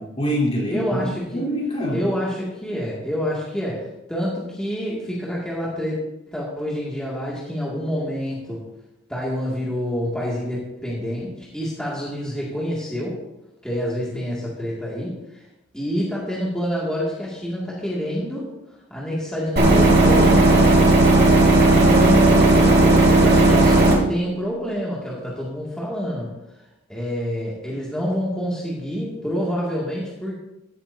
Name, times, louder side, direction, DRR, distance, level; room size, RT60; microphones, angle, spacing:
voice 1, 0.0-2.0, equal, 30° left, -4 dB, 3.3 m, -25 dB
voice 2, 0.7-1.4 1.9-6.0 6.3-8.6 9.1-13.2 13.6-15.4 15.7-18.5 18.9-20.8 21.8-26.3 26.9-30.3, equal, 5° left, -7 dB, 2.2 m, -27 dB
sound 1, 19.6-24.0, right 2 dB, 55° right, 3.5 m, -14 dB
14.0 x 12.5 x 2.7 m, 0.92 s
head